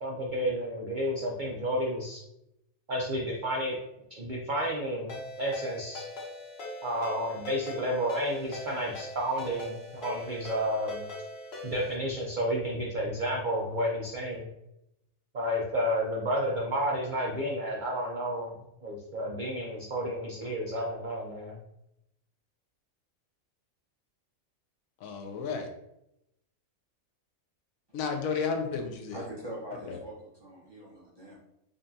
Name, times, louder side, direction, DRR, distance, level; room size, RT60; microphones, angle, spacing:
voice 1, 0.0-2.2 2.9-3.7 4.1-6.0 6.8-11.0 11.6-14.5 15.3-18.5 18.8-21.6, equal, 55° right, -2 dB, 0.5 m, -31 dB
Ringtone, 5.1-12.0, left 2 dB, 55° left, 1.0 m, -41 dB
voice 2, 25.0-25.7 27.9-29.2 29.9-30.0, left 5 dB, 85° left, 4 dB, 1.0 m, -32 dB
voice 3, 29.1-31.4, right 1 dB, 20° right, -6 dB, 1.0 m, -43 dB
5.0 x 2.3 x 2.6 m, 0.83 s
omnidirectional pair, 1.4 m